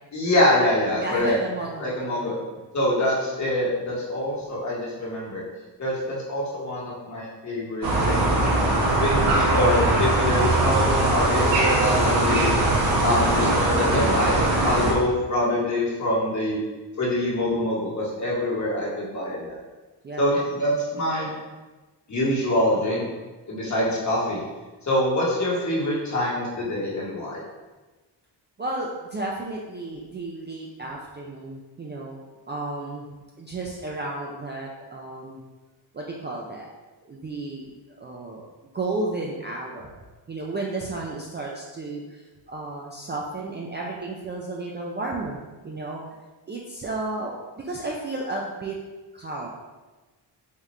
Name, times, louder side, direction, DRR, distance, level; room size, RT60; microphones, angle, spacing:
voice 1, 0.1-1.4 1.8-2.3 2.7-5.4 5.8-8.2 8.9-12.5 13.0-16.6 17.0-19.6 20.2-21.3 22.1-23.1 23.5-24.4 24.9-27.4, left 1 dB, 40° left, -5 dB, 1.2 m, -25 dB
voice 2, 1.0-2.3 20.0-20.3 28.6-32.2 32.5-33.1 33.4-35.4 35.9-36.7 37.1-38.5 38.7-39.9 40.3-42.2 42.5-46.0 46.5-48.8 49.1-49.5, right 2 dB, 25° right, -3 dB, 0.3 m, -33 dB
sound 1, 7.8-14.9, right 2 dB, 80° right, 1.1 m, -21 dB
3.6 x 2.4 x 4.2 m, 1.2 s
cardioid pair, 120°, 44 cm